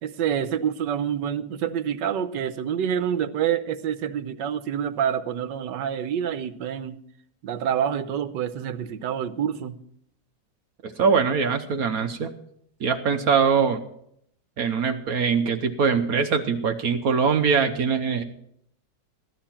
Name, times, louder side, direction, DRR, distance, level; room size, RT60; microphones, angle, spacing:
voice 1, 0.0-7.0 7.4-9.7, right 9 dB, 75° right, 12 dB, 1.5 m, -27 dB
voice 2, 10.8-12.3 12.8-13.8 14.6-18.2, right 6 dB, 60° right, 7 dB, 1.2 m, -22 dB
15.5 x 12.5 x 4.4 m, 0.69 s
omnidirectional pair, 1.9 m